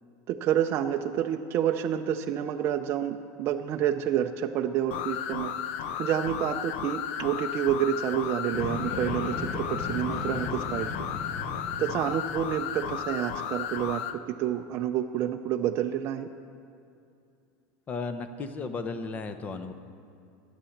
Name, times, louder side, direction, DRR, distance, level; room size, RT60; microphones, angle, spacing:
voice 1, 0.3-5.5 6.0-10.9 11.8-14.0 14.4-16.3, right 10 dB, 35° right, 4 dB, 0.5 m, -28 dB
sound 1, 4.9-14.2, left 9 dB, 60° left, 0.7 m, -34 dB
sound 2, 8.5-13.8, left 3 dB, 45° left, 1.4 m, -37 dB
voice 2, 17.9-19.7, left 4 dB, 20° left, 10 dB, 0.7 m, -34 dB
14.0 x 10.0 x 7.2 m, 2.5 s
supercardioid pair, 165°, 8 cm